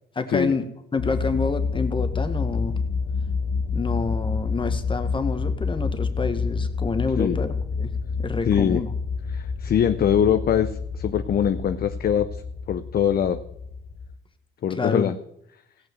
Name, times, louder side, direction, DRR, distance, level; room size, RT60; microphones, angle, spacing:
voice 1, 0.1-0.7 0.9-2.8 3.7-7.9 8.2-8.9 14.7-15.0, left 4 dB, 25° left, 8 dB, 1.4 m, -28 dB
sound 1, 1.0-14.1, left 4 dB, 75° left, 1.2 m, -28 dB
voice 2, 8.5-8.8 9.3-12.4 12.7-13.4 14.6-15.2, left 8 dB, 50° left, 9 dB, 0.6 m, -22 dB
16.5 x 5.6 x 7.7 m, 0.78 s
cardioid pair, 90°, 20 cm